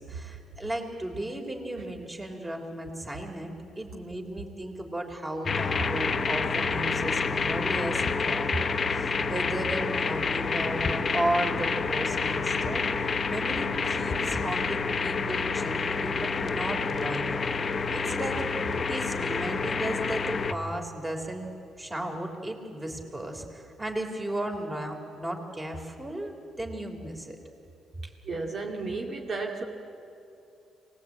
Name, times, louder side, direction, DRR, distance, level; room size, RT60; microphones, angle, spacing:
voice 1, 0.0-18.4 18.9-21.5 21.8-27.4, right 1 dB, 20° right, 3 dB, 3.3 m, -35 dB
sound 1, 5.5-20.5, left 4 dB, 40° left, 0.9 m, -28 dB
voice 2, 28.3-29.6, right 3 dB, 50° right, -1 dB, 2.2 m, -33 dB
24.0 x 19.5 x 8.6 m, 2.7 s
cardioid pair, 90°, 0 cm